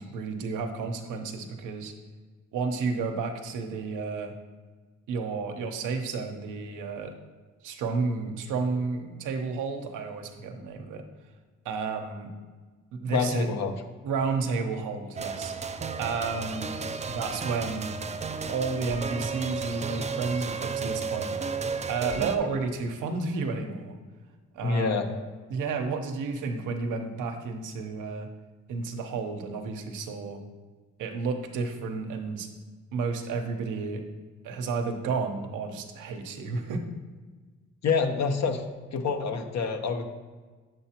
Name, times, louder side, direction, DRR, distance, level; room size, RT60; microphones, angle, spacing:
voice 1, 0.0-1.9 2.5-4.3 5.1-7.1 7.6-11.0 11.6-12.3 12.9-13.5 14.0-15.5 16.0-16.7 17.1-18.0 18.5-21.3 21.9-24.0 24.5-25.1 25.5-28.3 28.7-30.4 31.0-32.5 32.9-34.0 34.4-36.8, right 4 dB, 80° right, 4 dB, 0.9 m, -31 dB
voice 2, 13.1-13.7 24.6-25.1 37.8-38.6 38.9-40.0, left 5 dB, 60° left, 5 dB, 1.0 m, -26 dB
sound 1, 15.2-22.4, right 5 dB, 25° right, 0.4 m, -33 dB
7.9 x 7.5 x 2.9 m, 1.4 s
cardioid pair, 90°, 30 cm